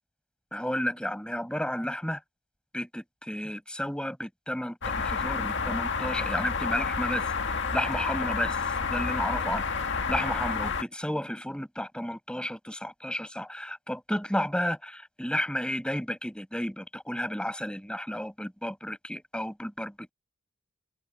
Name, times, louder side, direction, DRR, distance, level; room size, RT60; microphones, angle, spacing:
voice 1, 0.5-2.2 2.7-7.3 7.7-8.6 8.9-20.1, equal, 5° left, 7.3 m, -32 dB
sound 1, 4.8-10.8, left 5 dB, 55° left, 1.9 m, -30 dB
head